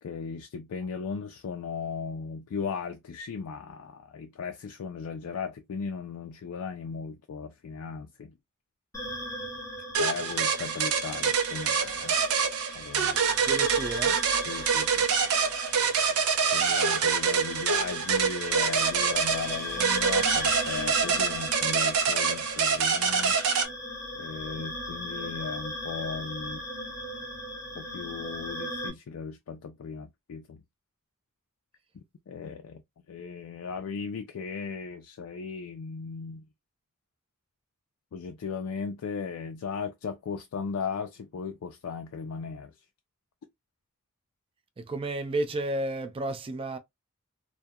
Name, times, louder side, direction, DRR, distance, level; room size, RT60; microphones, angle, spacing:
voice 1, 0.0-8.3 10.0-12.2 12.7-13.2 14.5-15.1 16.5-23.4 24.2-26.7 27.8-30.6 31.9-32.8 33.1-36.5 38.1-42.7, left 5 dB, 80° left, 0.4 m, -37 dB
sound 1, 8.9-28.9, left 1 dB, 15° left, 0.6 m, -38 dB
sound 2, 9.9-23.7, right 6 dB, 90° right, 0.6 m, -26 dB
voice 2, 13.5-14.2 44.8-46.8, right 2 dB, 25° right, 0.3 m, -32 dB
2.3 x 2.1 x 2.6 m
head